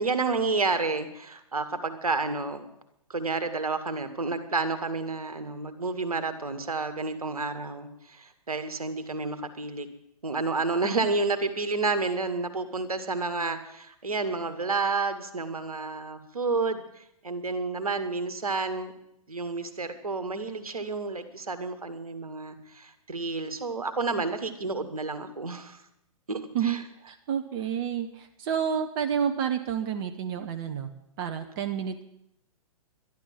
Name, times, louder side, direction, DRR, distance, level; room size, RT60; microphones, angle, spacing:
voice 1, 0.0-2.6 3.1-9.9 10.2-18.9 19.3-25.8 26.3-26.8, right 3 dB, 80° right, 9 dB, 1.8 m, -30 dB
voice 2, 26.5-30.9 31.2-32.0, right 8 dB, 40° right, 6 dB, 1.1 m, -30 dB
12.0 x 11.5 x 7.6 m, 0.79 s
figure-of-eight pair, 115°, 18 cm